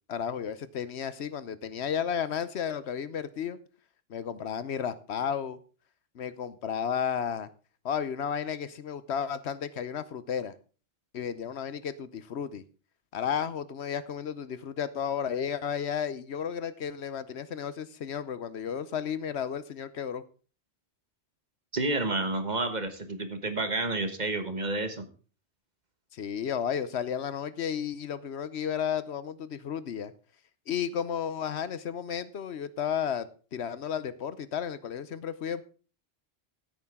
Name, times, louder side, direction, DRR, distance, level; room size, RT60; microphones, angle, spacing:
voice 1, 0.1-3.6 4.1-5.6 6.1-7.5 7.8-10.5 11.1-12.6 13.1-20.2 26.1-30.1 30.7-35.6, left 8 dB, 80° left, 15 dB, 1.1 m, -33 dB
voice 2, 21.7-25.1, right 2 dB, 40° right, 8 dB, 1.4 m, -30 dB
16.0 x 8.7 x 3.7 m, 0.37 s
omnidirectional pair, 1.1 m